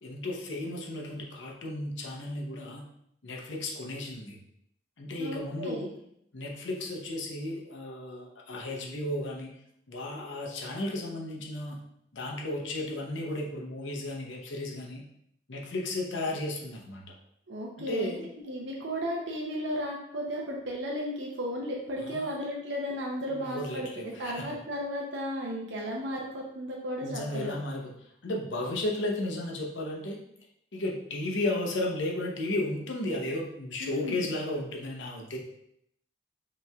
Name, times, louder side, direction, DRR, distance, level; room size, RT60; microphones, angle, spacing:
voice 1, 0.0-2.8 3.2-4.4 5.0-5.9 6.3-9.5 9.9-11.8 12.1-15.0 15.5-17.0 17.8-18.3 22.0-22.4 23.3-24.6 27.0-27.9 28.2-30.2 30.7-35.4, left 1 dB, 85° left, -1 dB, 0.8 m, -34 dB
voice 2, 5.2-5.9 17.5-18.2 18.5-23.9 24.2-27.6 33.8-34.3, equal, 80° right, -2 dB, 0.6 m, -34 dB
5.5 x 3.0 x 2.3 m, 0.75 s
head